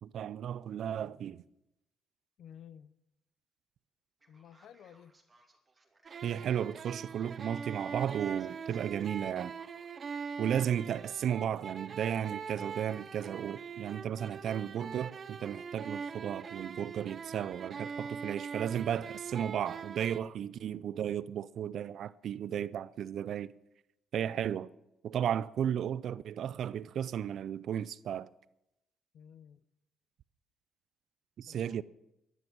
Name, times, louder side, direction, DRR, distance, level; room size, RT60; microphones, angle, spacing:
voice 1, 0.0-1.4 6.2-9.5 10.4-23.5 24.1-24.7 25.0-28.3 31.4-31.8, right 9 dB, 70° right, 0.4 m, -34 dB
voice 2, 2.4-2.9 4.3-5.1 29.1-29.6 31.5-31.8, left 9 dB, 70° left, 0.7 m, -53 dB
Male speech man speaking, 4.2-10.0, right 2 dB, 25° right, 2.8 m, -66 dB
sound 1, 6.1-20.2, right 6 dB, 45° right, 0.8 m, -42 dB
13.5 x 11.0 x 6.2 m
cardioid pair, 90°, 0 cm